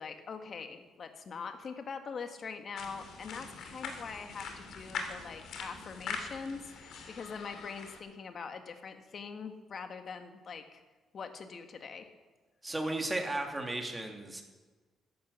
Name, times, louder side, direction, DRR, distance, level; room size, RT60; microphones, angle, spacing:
voice 1, 0.0-10.8 11.1-12.1, left 5 dB, 50° left, 7 dB, 1.7 m, -43 dB
sound 1, 2.8-8.0, left 5 dB, 75° left, 2.7 m, -43 dB
voice 2, 12.6-14.4, right 2 dB, 15° right, 3 dB, 2.6 m, -34 dB
13.5 x 11.5 x 7.0 m, 1.3 s
cardioid pair, 90°, 0 cm